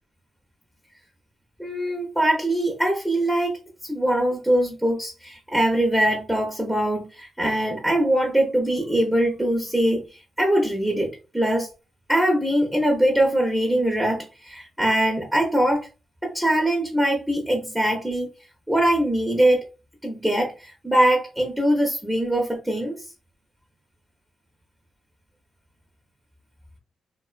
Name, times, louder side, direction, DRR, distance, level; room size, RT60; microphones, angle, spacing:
voice 1, 1.6-3.5 3.8-10.0 10.4-11.1 11.3-11.7 12.1-15.9 16.2-18.3 18.7-19.6 20.0-22.9, right 1 dB, 5° right, 0.8 m, -22 dB
2.4 x 2.2 x 2.4 m
cardioid pair, 65°, 0 cm